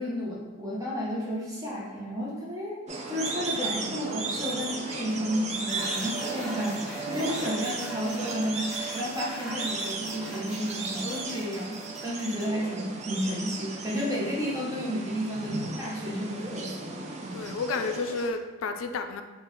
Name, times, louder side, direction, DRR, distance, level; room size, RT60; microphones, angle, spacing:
voice 1, 0.0-17.5, equal, 15° right, -5 dB, 0.8 m, -32 dB
white faced whistling duck, 2.9-18.3, right 3 dB, 35° right, 0.4 m, -35 dB
sound 1, 5.7-12.4, right 3 dB, ahead, 1.1 m, -40 dB
voice 2, 17.3-19.2, left 4 dB, 75° left, 7 dB, 0.3 m, -31 dB
3.8 x 2.4 x 3.9 m, 1.2 s
head